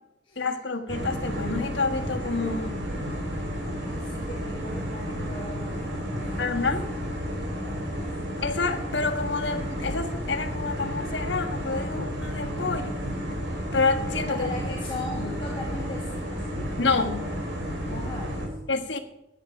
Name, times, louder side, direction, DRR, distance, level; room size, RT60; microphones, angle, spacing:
voice 1, 0.4-2.9 6.4-6.8 8.4-13.0 13.7-14.5 15.1-15.3 16.8-17.3 18.7-19.0, left 4 dB, 75° left, 5 dB, 1.5 m, -28 dB
sound 1, 0.9-18.5, equal, 75° right, 3.4 m, -32 dB
voice 2, 3.8-6.7 7.2-7.8 14.3-16.9 17.9-18.6, left 1 dB, 25° left, -2 dB, 2.1 m, -39 dB
15.0 x 9.9 x 5.1 m, 0.93 s
head